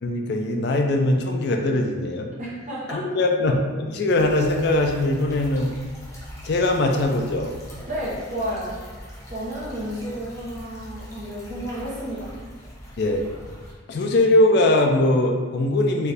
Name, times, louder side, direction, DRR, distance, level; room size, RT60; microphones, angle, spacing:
voice 1, 0.0-2.3 2.9-5.7 6.4-7.6 13.0-13.2 13.9-16.1, left 1 dB, 55° left, 3 dB, 0.4 m, -21 dB
voice 2, 2.4-3.0 7.9-8.7 9.3-12.3, equal, 40° right, -6 dB, 1.0 m, -31 dB
sound 1, 4.1-13.7, equal, 15° left, 0.7 m, -41 dB
4.3 x 2.6 x 3.3 m, 1.5 s
head